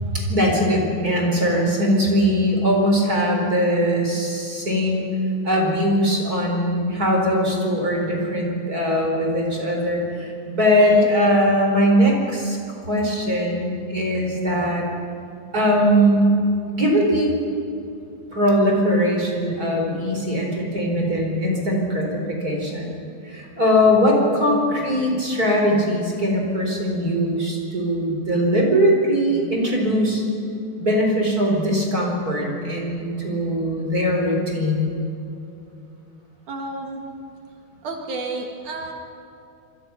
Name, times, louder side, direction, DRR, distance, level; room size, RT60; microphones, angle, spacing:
voice 1, 0.1-5.1 5.4-14.8 15.5-16.4 16.7-17.3 18.3-22.9 23.2-30.2 30.8-34.9, equal, 25° right, 0 dB, 4.7 m, -20 dB
voice 2, 36.5-37.0 37.8-38.9, right 3 dB, 65° right, 1 dB, 3.3 m, -31 dB
28.0 x 26.0 x 5.9 m, 2.7 s
omnidirectional pair, 4.0 m